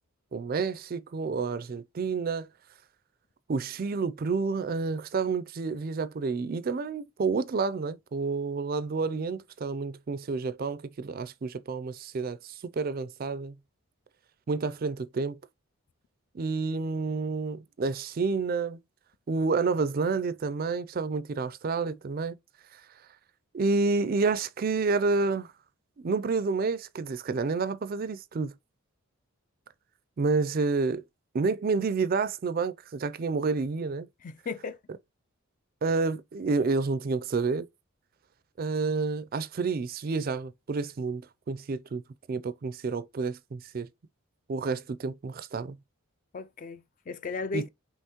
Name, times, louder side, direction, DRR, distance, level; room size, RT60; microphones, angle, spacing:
voice 1, 0.3-2.5 3.5-13.6 14.5-15.4 16.3-18.8 19.3-22.4 22.7-22.8 23.5-25.5 26.0-28.5 30.2-31.0 31.3-34.1 35.8-37.7 38.6-41.2 41.5-42.0 42.3-43.9 44.5-45.8 47.5-47.7, right 4 dB, 40° right, 0.3 m, -29 dB
voice 2, 34.2-34.8 46.3-47.7, left 4 dB, 35° left, 0.3 m, -35 dB
5.5 x 3.0 x 2.9 m
head